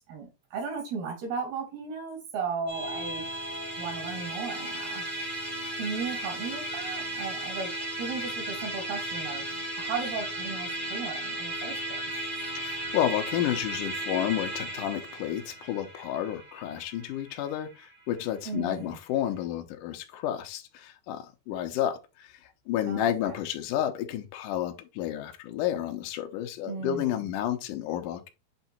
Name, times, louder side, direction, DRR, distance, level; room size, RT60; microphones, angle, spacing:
voice 1, 0.1-3.2 3.8-5.0 5.8-7.7 8.0-9.4 9.8-12.0 18.5-19.0 22.9-23.4 26.7-27.3, right 5 dB, 80° right, 4.5 m, -36 dB
Musical instrument, 2.7-18.2, right 1 dB, 65° right, 0.5 m, -35 dB
voice 2, 12.5-22.0 22.7-28.3, left 11 dB, 70° left, 2.2 m, -31 dB
8.1 x 3.5 x 4.2 m
omnidirectional pair, 4.3 m